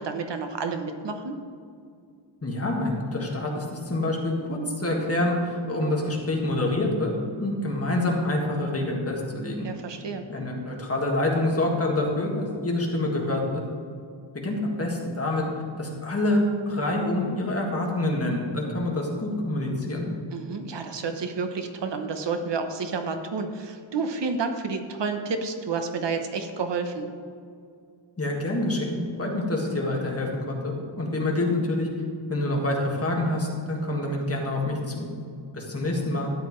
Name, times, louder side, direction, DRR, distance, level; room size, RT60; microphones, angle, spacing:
voice 1, 0.0-1.4 9.6-10.2 20.3-27.1, right 4 dB, 60° right, 6 dB, 0.9 m, -30 dB
voice 2, 2.4-7.1 7.4-9.7 10.3-13.6 14.4-15.5 15.8-20.1 28.2-31.9 32.3-35.1 35.5-36.3, left 1 dB, 30° left, -1 dB, 1.8 m, -26 dB
13.0 x 9.9 x 3.1 m, 2.3 s
wide cardioid pair, 155°, 47 cm